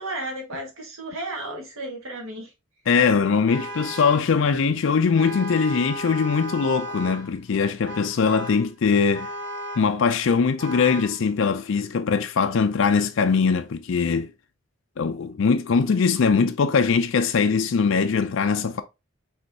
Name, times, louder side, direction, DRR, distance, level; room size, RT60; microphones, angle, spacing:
voice 1, 0.0-2.5, right 1 dB, 75° right, 1.7 m, -33 dB
voice 2, 2.9-9.3 9.8-14.3 15.0-18.8, left 5 dB, 60° left, 0.4 m, -21 dB
Vehicle horn car horn honking, 3.5-4.4 5.1-7.3 7.8-8.7 9.1-10.0 10.6-11.2, equal, 55° right, 0.7 m, -35 dB
5.3 x 3.4 x 2.7 m
head